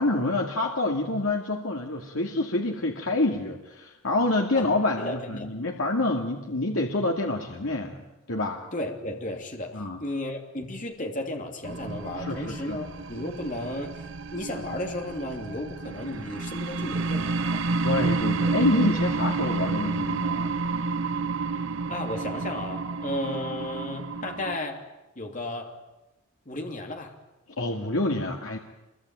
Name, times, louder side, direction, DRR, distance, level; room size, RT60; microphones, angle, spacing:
voice 1, 0.0-8.7 9.7-10.0 12.2-12.8 17.8-20.5 27.6-28.6, left 2 dB, 70° left, 1 dB, 2.4 m, -27 dB
voice 2, 5.0-5.5 8.7-14.0 14.3-17.6 21.9-24.8 25.2-25.8 26.5-27.1, left 1 dB, 35° left, 3 dB, 3.0 m, -34 dB
sound 1, 11.6-24.6, right 3 dB, 60° right, 0.9 m, -30 dB
27.0 x 23.0 x 9.2 m, 0.98 s
head